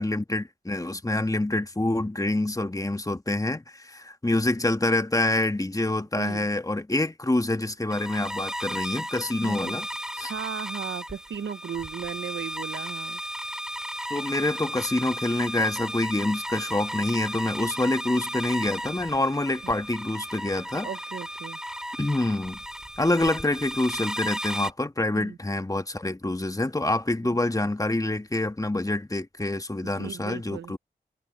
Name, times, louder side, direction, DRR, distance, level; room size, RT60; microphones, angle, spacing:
voice 1, 0.0-9.9 10.1-10.3 14.1-20.9 22.0-22.6 23.0-30.8, left 2 dB, 15° left, 1.5 m, -26 dB
voice 2, 6.2-6.5 9.4-9.7 10.3-13.2 19.6-19.7 20.8-21.6 25.2-25.4 27.2-27.4 30.0-30.7, right 8 dB, 65° right, 0.7 m, -36 dB
sound 1, 7.9-24.7, equal, 5° right, 3.7 m, -35 dB
cardioid pair, 40°, 20 cm